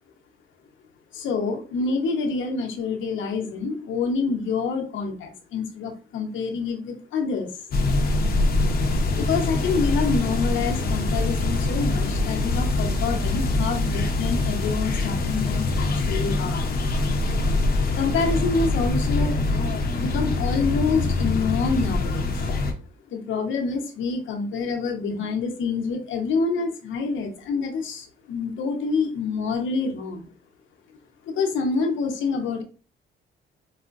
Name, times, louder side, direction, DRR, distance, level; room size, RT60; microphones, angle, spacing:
voice 1, 1.1-7.7 9.2-16.6 17.9-19.4 19.9-22.4 23.1-30.3 31.2-32.6, left 4 dB, 75° left, 2 dB, 0.9 m, -27 dB
sound 1, 7.7-22.7, left 2 dB, 50° left, 0.7 m, -24 dB
4.8 x 2.2 x 2.5 m, 0.37 s
cardioid pair, 90°, 20 cm